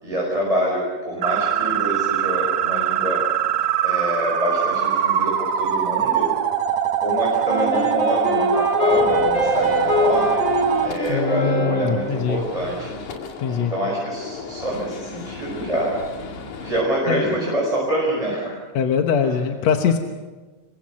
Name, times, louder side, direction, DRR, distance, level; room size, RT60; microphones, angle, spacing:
voice 1, 0.0-3.2 3.8-6.3 7.0-10.3 10.8-12.9 13.5-16.0 16.6-18.5 19.2-19.4, right 1 dB, 10° right, -3 dB, 5.4 m, -26 dB
sound 1, 1.2-10.9, right 10 dB, 70° right, 2.3 m, -22 dB
Wind instrument woodwind instrument, 7.4-12.2, left 3 dB, 35° left, 5.8 m, -24 dB
Gunshot gunfire, 8.9-16.8, left 4 dB, 90° left, 3.7 m, -35 dB
voice 2, 11.1-12.4 13.4-13.7 17.1-17.3 18.8-20.0, left 7 dB, 70° left, 4 dB, 2.3 m, -22 dB
27.5 x 23.5 x 6.3 m, 1.3 s
omnidirectional pair, 3.3 m